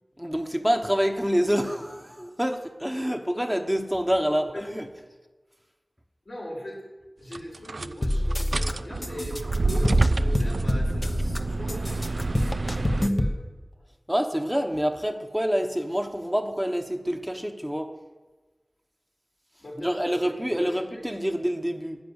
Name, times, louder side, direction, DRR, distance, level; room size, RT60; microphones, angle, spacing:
voice 1, 0.2-4.9 14.1-17.9 19.8-22.0, equal, 5° right, 5 dB, 1.1 m, -27 dB
voice 2, 4.2-4.6 6.2-6.8 7.2-13.3 19.6-21.0, equal, 75° left, -3 dB, 4.8 m, -40 dB
sound 1, 7.3-13.1, right 3 dB, 90° right, 0.4 m, -28 dB
sound 2, 8.0-8.7 9.0-11.4 11.7-13.4, left 1 dB, 35° left, 1.0 m, -26 dB
10.5 x 9.3 x 8.0 m, 1.2 s
wide cardioid pair, 45°, 0 cm